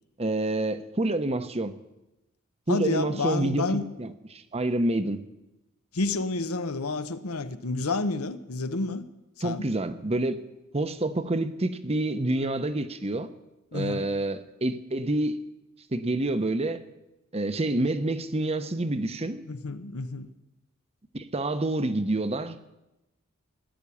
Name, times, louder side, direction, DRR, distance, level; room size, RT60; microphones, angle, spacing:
voice 1, 0.2-1.8 2.7-5.2 9.4-10.4 10.7-13.3 13.7-15.4 15.9-16.8 17.3-19.4 21.1-22.7, right 2 dB, 30° right, 0.9 m, -28 dB
voice 2, 2.7-3.9 5.9-9.0 9.4-9.7 13.7-14.1 19.4-20.3, left 3 dB, 80° left, 1.0 m, -30 dB
15.5 x 10.5 x 8.5 m
head